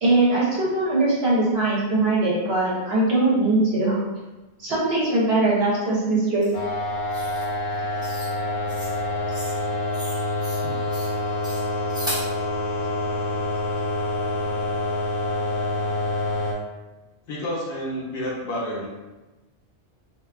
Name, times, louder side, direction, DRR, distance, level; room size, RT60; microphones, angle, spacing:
voice 1, 0.0-4.0 4.6-6.5, right 2 dB, 65° right, -6 dB, 1.1 m, -21 dB
sound 1, 6.4-6.5 7.1-7.5 8.0-8.3 8.7-8.9 9.3-9.6 9.9-10.6 10.9-11.1 11.4-12.3, equal, 5° right, 0.4 m, -35 dB
sound 2, 6.5-16.5, left 1 dB, 85° left, 0.9 m, -27 dB
voice 2, 17.3-18.9, equal, 60° left, -5 dB, 0.7 m, -29 dB
2.5 x 2.4 x 2.3 m, 1.1 s
omnidirectional pair, 1.1 m